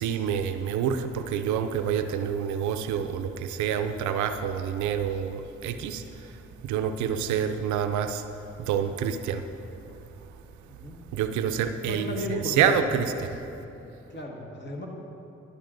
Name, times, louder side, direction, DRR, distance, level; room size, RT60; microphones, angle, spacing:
voice 1, 0.0-6.0 6.6-8.2 8.6-9.4 11.1-13.3, right 8 dB, 75° right, 9 dB, 0.5 m, -27 dB
voice 2, 11.8-12.8 14.1-14.9, left 2 dB, 35° left, 0 dB, 1.4 m, -34 dB
11.5 x 6.6 x 2.5 m, 2.9 s
hypercardioid pair, 40°, 30 cm